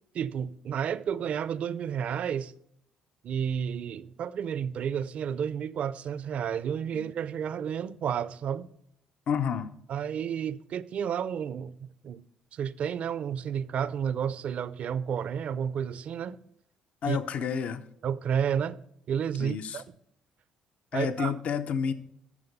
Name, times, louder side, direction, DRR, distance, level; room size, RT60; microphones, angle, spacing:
voice 1, 0.1-2.5 3.2-8.7 9.9-11.8 12.0-12.2 12.5-16.4 17.1-17.2 18.0-18.8 19.1-19.8 20.9-21.3, right 8 dB, 60° right, 0.5 m, -31 dB
voice 2, 9.3-9.7 17.0-17.8 19.4-19.8 20.9-21.9, left 7 dB, 65° left, 0.6 m, -30 dB
11.0 x 6.6 x 5.3 m
supercardioid pair, 75°, 2 cm